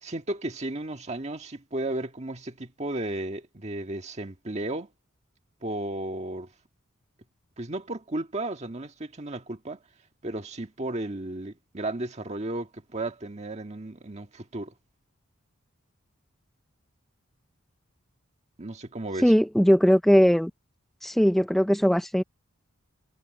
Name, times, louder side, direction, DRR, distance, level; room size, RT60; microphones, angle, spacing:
voice 1, 0.0-4.9 5.6-6.5 7.6-9.8 10.2-14.7 18.6-19.3, right 2 dB, 30° right, 1.6 m, -34 dB
voice 2, 19.2-20.5 21.0-22.2, equal, ahead, 0.4 m, -20 dB
head